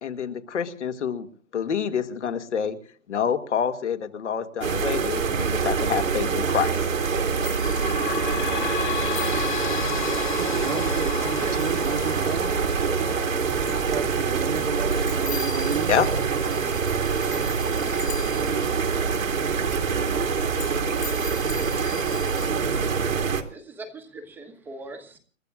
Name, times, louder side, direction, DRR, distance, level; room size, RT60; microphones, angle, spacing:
voice 1, 0.0-1.3 1.5-2.8 3.1-6.9 15.9-16.1, left 7 dB, 60° left, 2.3 m, -27 dB
sound 1, 4.6-23.4, right 5 dB, 80° right, 2.6 m, -25 dB
sound 2, 7.4-8.7 9.0-12.4 12.8-12.9 13.2-13.3 13.7-14.3 14.6-18.8 19.1-19.4 19.7-19.8 20.6-22.5, left 6 dB, 80° left, 4.5 m, -42 dB
sound 3, 7.4-20.6 21.1-21.2 21.5-21.6 22.4-22.5, left 10 dB, 40° left, 0.9 m, -36 dB
voice 2, 10.4-13.1 13.9-16.0, right 7 dB, 65° right, 1.7 m, -32 dB
voice 3, 23.5-25.2, right 2 dB, 5° right, 1.2 m, -42 dB
30.0 x 14.0 x 2.5 m
hypercardioid pair, 155°, 39 cm